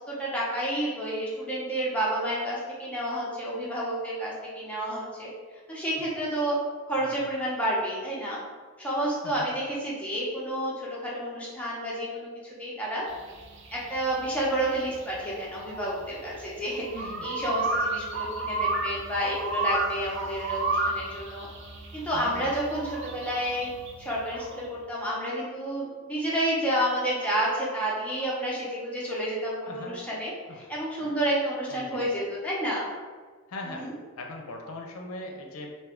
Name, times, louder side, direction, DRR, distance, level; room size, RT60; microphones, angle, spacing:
voice 1, 0.0-5.3 5.7-6.6 6.9-8.4 8.8-13.0 13.7-16.9 17.2-21.5 21.9-23.7 24.0-32.9 33.7-33.9, right 1 dB, 5° left, -6 dB, 0.6 m, -30 dB
voice 2, 9.2-9.6 16.9-17.3 22.1-22.5 29.7-30.1 30.5-30.7 31.0-31.1 31.7-32.0 33.5-33.9 34.2-35.8, left 2 dB, 80° left, 1 dB, 0.5 m, -40 dB
sound 1, 13.1-24.6, right 2 dB, 55° right, 0.4 m, -32 dB
2.5 x 2.2 x 3.5 m, 1.5 s
head